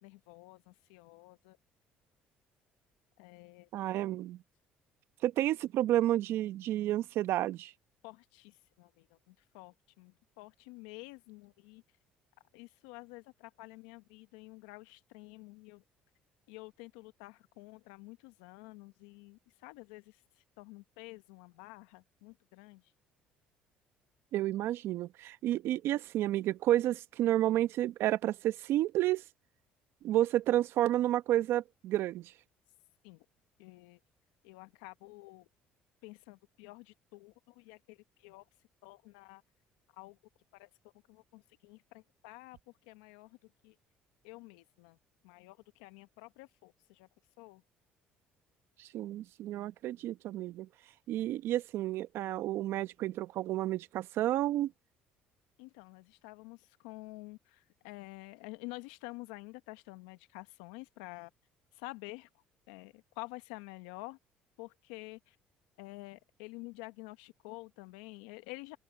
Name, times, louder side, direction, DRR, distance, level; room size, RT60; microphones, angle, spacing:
voice 1, 0.0-1.6 3.2-3.7 8.0-11.8 12.5-15.8 16.5-20.2 20.6-22.8 33.0-33.2 33.6-34.0 34.4-35.5 36.0-38.4 38.8-39.4 40.0-40.2 40.5-40.7 41.1-42.6 42.9-43.7 44.2-45.0 45.2-47.1 47.4-47.6 55.6-61.3 61.7-62.3 62.7-64.2 64.6-65.4 65.8-68.8, left 23 dB, 85° left, 1.2 m, -49 dB
voice 2, 3.7-4.4 5.2-7.7 24.3-29.2 30.0-32.3 48.8-50.7 51.1-54.7, right 13 dB, 65° right, 1.0 m, -31 dB
open air
supercardioid pair, 70°, 4 cm